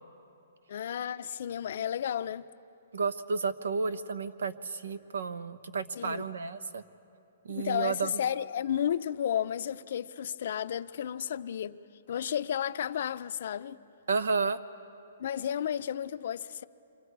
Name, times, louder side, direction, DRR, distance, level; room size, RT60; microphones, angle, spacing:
voice 1, 0.7-2.4 6.0-6.3 7.5-11.8 12.1-13.8 15.2-16.6, left 9 dB, 55° left, 0.5 m, -32 dB
voice 2, 2.9-6.8 7.4-8.2 14.1-14.6, right 4 dB, 85° right, 0.9 m, -32 dB
28.0 x 23.5 x 4.7 m
hypercardioid pair, 160°, 0 cm